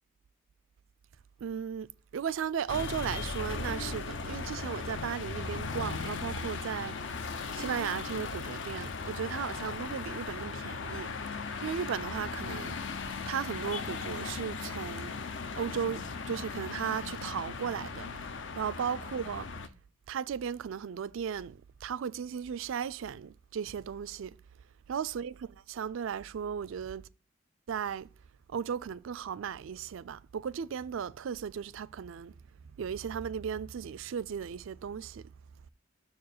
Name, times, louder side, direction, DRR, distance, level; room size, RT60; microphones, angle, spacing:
voice 1, 1.4-1.9 2.1-7.0 7.5-11.1 11.6-12.8 13.3-15.1 15.5-18.1 18.6-19.5 20.1-24.4 24.9-25.3 25.7-27.1 27.7-28.1 28.5-32.3 32.8-35.2, right 7 dB, 70° right, 0.3 m, -36 dB
sound 1, 2.7-19.7, left 4 dB, 60° left, 0.6 m, -37 dB
6.6 x 4.7 x 6.5 m
head